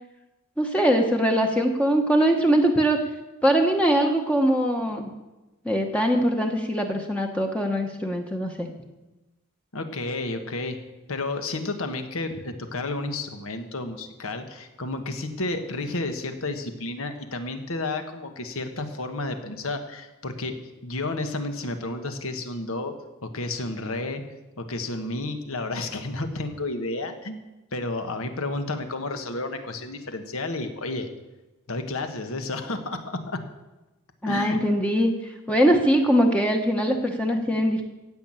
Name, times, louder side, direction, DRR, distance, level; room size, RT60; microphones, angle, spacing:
voice 1, 0.6-3.0 3.4-5.1 5.6-8.7 34.2-35.1 35.5-37.8, equal, 5° left, 2 dB, 1.0 m, -22 dB
voice 2, 9.7-10.8 11.1-20.5 20.8-22.9 23.2-24.2 24.6-27.4 27.7-31.1 31.7-33.4 34.2-34.6, left 2 dB, 65° left, 7 dB, 1.5 m, -31 dB
16.0 x 6.0 x 8.9 m, 1.1 s
head